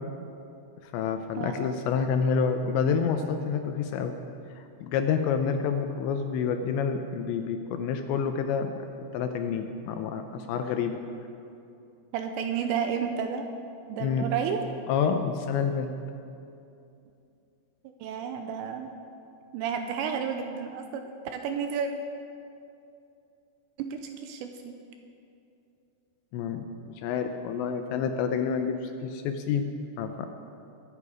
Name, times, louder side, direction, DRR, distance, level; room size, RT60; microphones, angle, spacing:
voice 1, 0.8-4.1 4.6-8.7 9.1-11.0 14.0-14.2 14.9-15.9 26.3-29.7 30.0-30.3, left 6 dB, 80° left, 6 dB, 2.7 m, -28 dB
voice 2, 12.1-13.5 13.9-14.6 18.0-18.9 19.5-21.9 23.8-24.8, right 7 dB, 80° right, 5 dB, 2.7 m, -31 dB
23.5 x 8.7 x 4.9 m, 2.6 s
omnidirectional pair, 5.6 m